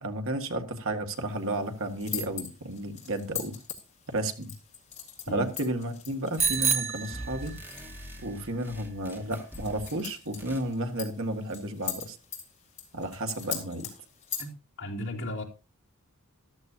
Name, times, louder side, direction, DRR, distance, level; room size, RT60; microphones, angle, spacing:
voice 1, 0.0-3.6 4.1-4.5 5.3-7.6 8.2-12.2 12.9-13.9, right 1 dB, 65° right, 6 dB, 1.8 m, -32 dB
sound 1, 1.1-14.5, left 7 dB, 30° left, 4.0 m, -42 dB
sound 2, 6.4-6.8 7.1-10.0 10.4-10.7, right 1 dB, 10° right, 2.5 m, -44 dB
Bicycle bell, 6.4-7.9, right 6 dB, 30° right, 1.1 m, -28 dB
voice 2, 14.8-15.4, left 1 dB, 60° left, -1 dB, 3.1 m, -34 dB
14.5 x 13.0 x 2.8 m, 0.31 s
head